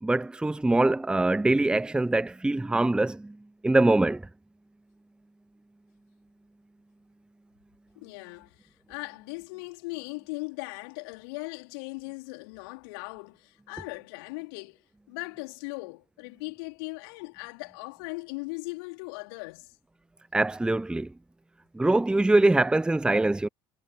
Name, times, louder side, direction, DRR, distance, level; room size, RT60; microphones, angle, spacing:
voice 1, 0.0-3.4 3.6-4.2 20.3-21.1 21.7-23.5, right 2 dB, 5° right, 0.8 m, -23 dB
voice 2, 8.0-19.7, left 28 dB, 60° left, 4.4 m, -39 dB
figure-of-eight pair, 65°, 14 cm